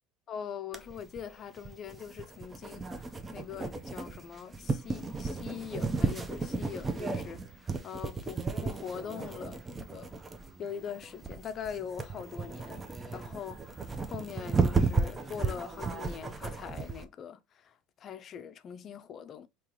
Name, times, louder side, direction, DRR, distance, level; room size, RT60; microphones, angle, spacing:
voice 1, 0.3-10.1 10.6-12.8 13.1-19.5, left 7 dB, 45° left, 0.5 m, -42 dB
sound 1, 0.7-17.0, right 4 dB, 25° right, 0.6 m, -34 dB
3.5 x 2.9 x 3.0 m
hypercardioid pair, 85°, 0 cm